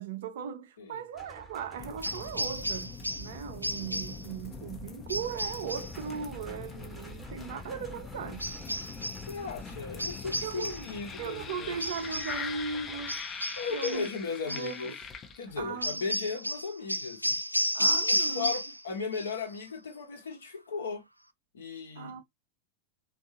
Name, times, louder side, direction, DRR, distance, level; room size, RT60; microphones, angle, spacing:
voice 1, 0.0-8.5 10.4-10.8 11.2-13.2 13.7-14.0 14.5-14.9 15.6-16.1 17.7-18.6 22.0-22.2, right 7 dB, 55° right, 0.7 m, -38 dB
sound 1, 1.1-2.5 5.2-13.3 15.5-15.9, equal, ahead, 1.0 m, -51 dB
sound 2, 1.8-15.7, left 5 dB, 25° left, 0.7 m, -43 dB
sound 3, 2.0-3.3 3.6-4.2 5.1-6.0 8.4-9.3 10.0-10.9 11.8-12.4 13.1-14.1 14.5-14.7 15.8-18.8 19.1-19.6, equal, 90° right, 0.3 m, -32 dB
voice 2, 9.3-11.8 13.5-14.9 15.4-21.0 21.5-22.2, left 5 dB, 65° left, 1.1 m, -36 dB
3.6 x 2.7 x 2.6 m
figure-of-eight pair, 90°, 0 cm